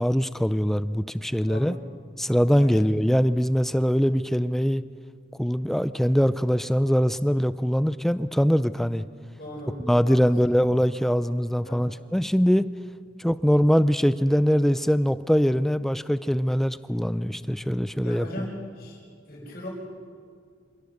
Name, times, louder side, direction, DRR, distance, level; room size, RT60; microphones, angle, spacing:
voice 1, 0.0-1.7 2.2-4.8 5.4-9.0 9.8-12.7 13.2-18.3, equal, ahead, 14 dB, 0.4 m, -22 dB
voice 2, 1.4-1.8 2.6-2.9 9.4-9.8 10.1-10.4 11.5-11.9 18.0-19.7, left 1 dB, 50° left, -7 dB, 5.2 m, -39 dB
27.0 x 17.5 x 6.7 m, 2.1 s
head